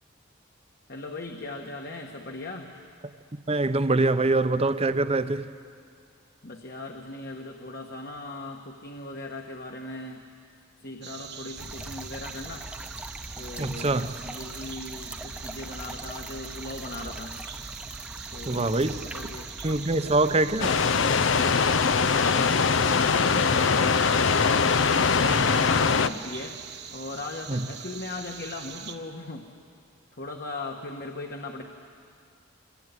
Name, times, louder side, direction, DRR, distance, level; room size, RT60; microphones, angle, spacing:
voice 1, 0.9-2.7 6.4-10.2 10.8-12.6 13.3-17.3 18.3-19.5 22.1-26.6 26.9-29.5 30.1-31.6, left 2 dB, 50° left, 1.7 m, -39 dB
voice 2, 3.5-5.5 13.6-14.1 18.5-19.0 19.6-20.7 27.5-27.7, right 2 dB, 30° right, 0.8 m, -24 dB
sound 1, 11.0-29.0, right 8 dB, 60° right, 1.3 m, -43 dB
sound 2, 11.6-21.2, right 1 dB, 5° right, 0.9 m, -41 dB
sound 3, 20.6-26.1, left 5 dB, 70° left, 0.7 m, -22 dB
25.5 x 23.0 x 9.9 m
head